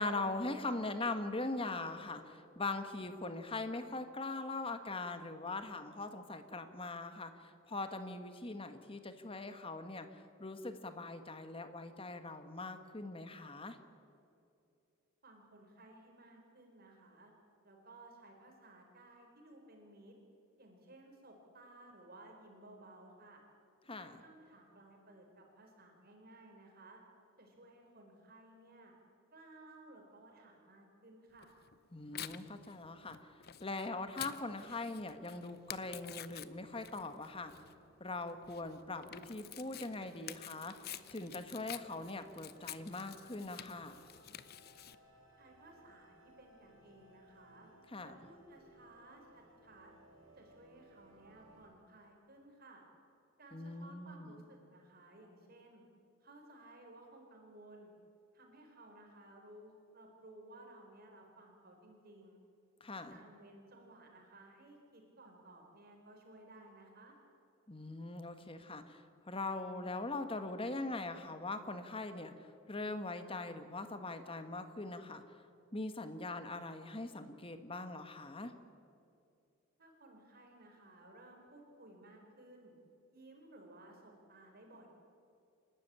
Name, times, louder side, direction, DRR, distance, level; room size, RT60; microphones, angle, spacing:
voice 1, 0.0-13.8 23.9-24.2 31.9-33.2 33.6-37.5 38.0-40.7 41.1-44.0 47.9-48.1 53.5-54.4 62.8-63.1 67.7-69.0 69.3-72.3 72.7-75.2 75.7-78.5, left 2 dB, 25° left, 9 dB, 1.3 m, -41 dB
voice 2, 15.2-17.3 17.6-20.1 20.6-23.4 24.0-27.0 27.4-28.9 29.3-31.5 45.4-47.7 48.0-49.9 50.4-52.8 53.4-55.8 56.2-57.9 58.3-62.4 63.1-67.1 79.8-82.8 83.1-84.9, right 2 dB, 50° right, 2 dB, 4.0 m, -58 dB
Tearing, 31.4-44.9, left 11 dB, 50° left, 0.7 m, -50 dB
sound 1, 35.1-51.7, right 1 dB, 85° right, 5.1 m, -64 dB
28.0 x 12.5 x 8.7 m, 2.6 s
head